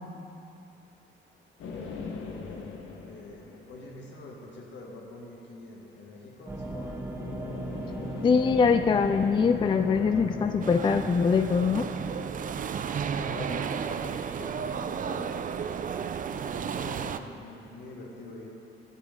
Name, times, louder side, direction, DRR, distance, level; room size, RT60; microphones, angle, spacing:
sound 1, 1.6-4.4 7.2-12.6, left 4 dB, 85° left, 1.1 m, -40 dB
voice 1, 2.1-2.8 3.1-7.2 13.1-15.6 16.2-18.5, left 2 dB, 65° left, -1 dB, 2.0 m, -45 dB
sound 2, 6.5-15.7 16.0-16.1 16.3-16.5, right 1 dB, 10° right, 1.3 m, -40 dB
voice 2, 8.2-11.9, left 5 dB, 25° left, 9 dB, 0.3 m, -23 dB
sound 3, 10.6-17.2, right 7 dB, 40° right, 0.5 m, -33 dB
12.0 x 11.0 x 3.7 m, 2.8 s
cardioid pair, 90°, 20 cm